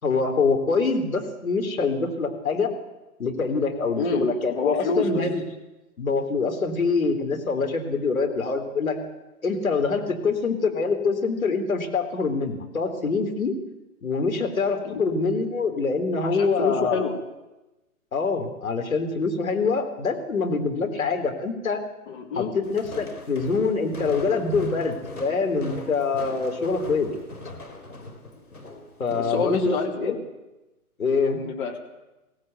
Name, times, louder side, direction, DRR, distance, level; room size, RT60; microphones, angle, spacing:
voice 1, 0.0-2.7 3.2-5.4 6.0-9.0 9.4-13.5 14.0-17.1 18.1-21.8 22.4-27.1 29.0-29.8 30.0-30.2 31.0-31.4, left 4 dB, 65° left, 5 dB, 3.8 m, -25 dB
voice 2, 3.9-5.2 14.9-15.0 16.2-17.1 22.1-22.5 29.2-30.2 31.3-31.8, left 4 dB, 35° left, 0 dB, 3.8 m, -27 dB
Walk footsteps, 22.6-29.9, left 2 dB, 80° left, 4.3 m, -40 dB
21.5 x 16.5 x 8.1 m, 1.0 s
figure-of-eight pair, 130°, 44 cm